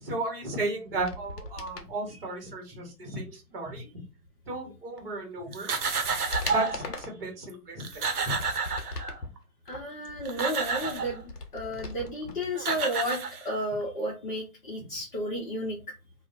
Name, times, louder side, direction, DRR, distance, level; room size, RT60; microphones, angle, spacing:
voice 1, 0.0-3.9 4.5-5.7 6.5-7.8 8.2-8.3, right 2 dB, 40° right, 1 dB, 1.1 m, -34 dB
sound 1, 0.9-1.9 5.0-5.1 5.6-7.2 7.8-9.3 9.7-12.4 12.6-12.7, left 3 dB, 90° left, 0.7 m, -40 dB
sound 2, 5.5-6.8 7.5-7.6 7.8-9.4 10.0-11.2 12.2-12.3 12.6-13.8, right 4 dB, 70° right, 0.7 m, -30 dB
voice 2, 9.7-13.2 13.4-15.8, equal, 35° left, -3 dB, 0.6 m, -32 dB
2.5 x 2.1 x 2.5 m, 0.30 s
figure-of-eight pair, 135°, 46 cm